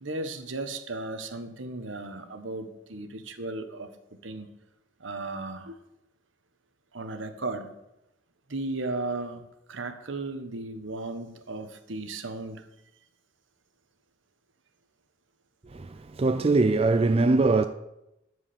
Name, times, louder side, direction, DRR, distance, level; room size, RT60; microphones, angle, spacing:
voice 1, 0.0-3.9 4.2-4.5 5.0-5.8 6.9-7.7 8.5-12.7, right 2 dB, 75° right, 1.2 m, -35 dB
voice 2, 15.7-17.7, right 3 dB, 30° right, 0.4 m, -22 dB
13.0 x 5.0 x 8.5 m
head